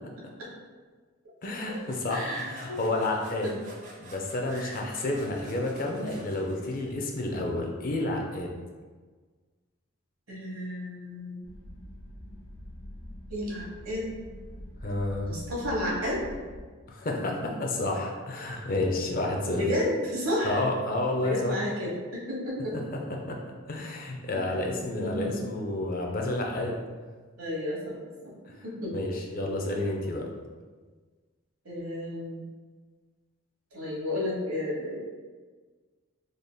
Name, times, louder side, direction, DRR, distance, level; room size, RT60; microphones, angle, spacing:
voice 1, 1.4-3.5 4.0-8.5 14.8-15.3 16.9-19.6 20.4-21.6 23.3-23.4 23.7-26.8 28.9-30.3, left 2 dB, 40° left, 1 dB, 0.5 m, -30 dB
sound 1, 1.4-7.1, right 2 dB, 35° right, 0.6 m, -50 dB
voice 2, 2.1-2.8 3.4-3.5 4.4-4.9 5.3-5.7 10.3-11.4 13.3-14.1 15.2-16.2 19.5-20.6 21.2-22.8 24.3-24.4 24.9-25.4 27.4-28.0 28.2-28.3 28.6-28.9 31.6-32.4 33.7-35.0, left 1 dB, 85° right, -4 dB, 1.1 m, -32 dB
sound 2, 11.4-16.6, left 1 dB, 90° left, 0.6 m, -44 dB
3.8 x 3.3 x 2.2 m, 1.4 s
head